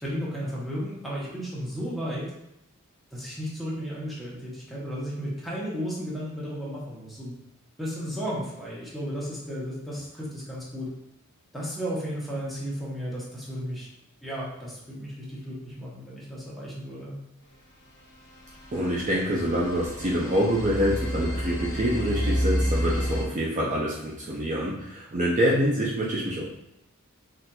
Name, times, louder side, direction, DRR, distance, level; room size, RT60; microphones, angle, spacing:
voice 1, 0.0-2.3 3.1-7.3 7.8-10.9 11.5-13.9 14.2-17.1, equal, ahead, -7 dB, 0.8 m, -34 dB
sound 1, 17.8-23.2, equal, 55° left, 1.1 m, -30 dB
voice 2, 18.7-26.4, equal, 35° right, -4 dB, 0.4 m, -26 dB
4.1 x 2.5 x 2.2 m, 0.82 s
head